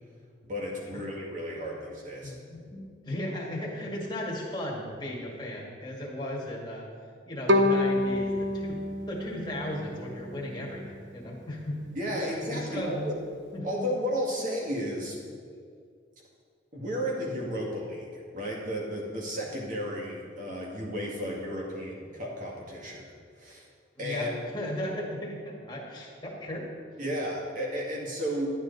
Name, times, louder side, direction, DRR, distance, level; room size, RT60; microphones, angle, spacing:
voice 1, 0.4-2.3 12.0-13.1 13.6-15.2 16.7-23.1 23.4-23.6 24.0-24.3 27.0-28.5, equal, 40° right, -3 dB, 2.1 m, -33 dB
voice 2, 2.2-6.9 7.3-8.8 9.1-11.8 12.2-13.1 13.5-13.9 24.0-26.7, left 1 dB, 20° left, -4 dB, 1.9 m, -36 dB
Bowed string instrument, 7.5-10.6, left 1 dB, 65° right, 0.8 m, -27 dB
11.5 x 9.8 x 4.1 m, 2.1 s
head